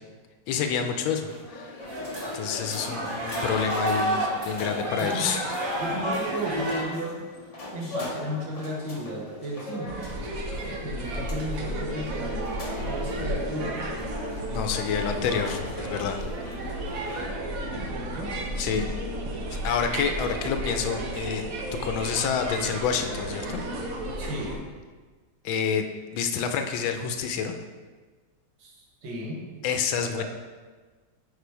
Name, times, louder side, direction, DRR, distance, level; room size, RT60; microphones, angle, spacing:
voice 1, 0.5-1.8 2.3-5.5 14.5-16.2 16.5-16.6 18.6-18.8 19.5-21.4 21.8-23.6 25.4-25.8 26.1-27.6 29.6-30.2, left 7 dB, 85° left, 6 dB, 1.4 m, -28 dB
sound 1, 0.7-17.3, left 2 dB, 60° left, 0.3 m, -42 dB
sound 2, 1.8-6.8, right 1 dB, 30° right, 1.3 m, -30 dB
voice 2, 5.8-7.2 7.7-10.0 10.7-13.8 17.9-18.4 24.2-24.6 28.6-28.7 29.0-29.4 30.0-30.2, right 1 dB, 70° right, -2 dB, 2.0 m, -34 dB
sound 3, 9.9-24.6, right 1 dB, 55° right, 1.1 m, -33 dB
6.8 x 4.7 x 4.6 m, 1.4 s
omnidirectional pair, 2.1 m